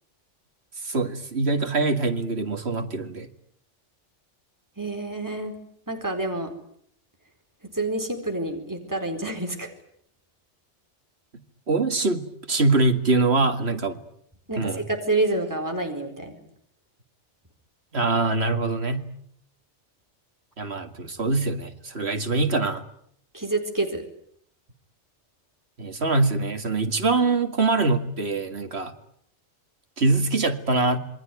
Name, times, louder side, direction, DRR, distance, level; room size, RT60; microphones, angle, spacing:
voice 1, 0.8-3.3 11.7-14.0 14.6-14.8 17.9-19.1 20.6-22.8 25.8-28.9 30.0-31.0, right 3 dB, 60° right, 8 dB, 2.3 m, -24 dB
voice 2, 4.8-5.6 5.9-6.5 7.7-9.7 14.5-16.4 23.3-24.0, right 2 dB, 15° right, 4 dB, 4.4 m, -28 dB
27.5 x 22.5 x 9.3 m, 0.69 s
omnidirectional pair, 1.2 m